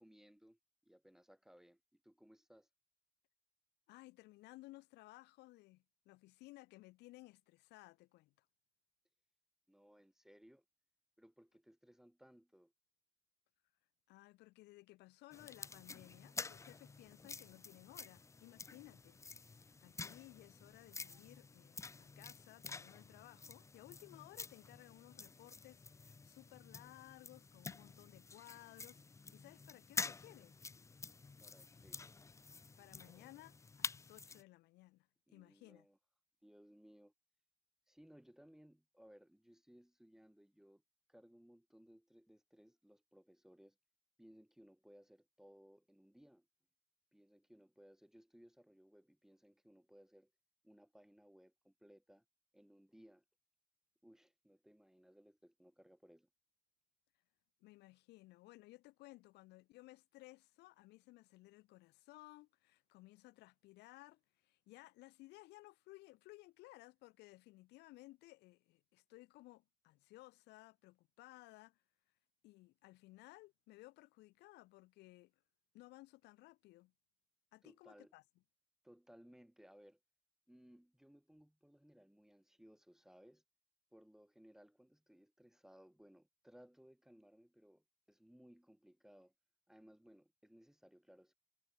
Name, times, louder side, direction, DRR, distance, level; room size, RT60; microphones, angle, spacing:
voice 1, 0.0-2.7 9.7-10.6 11.2-12.7 31.4-32.0 35.3-36.0 36.4-37.1 37.9-40.8 41.1-43.8 44.2-46.5 47.1-50.3 50.6-52.2 52.5-53.2 54.0-56.3 77.6-78.1 78.8-80.0 80.5-83.4 83.9-89.3 89.7-91.3, equal, 5° right, 2.2 m, -64 dB
voice 2, 3.9-8.5 14.1-29.0 29.3-30.6 32.8-35.9 57.6-71.8 72.4-75.4 75.7-76.9 77.5-78.2, left 19 dB, 90° left, 3.9 m, -59 dB
sound 1, 15.3-34.4, left 4 dB, 15° left, 0.6 m, -49 dB
cardioid pair, 110°, 17 cm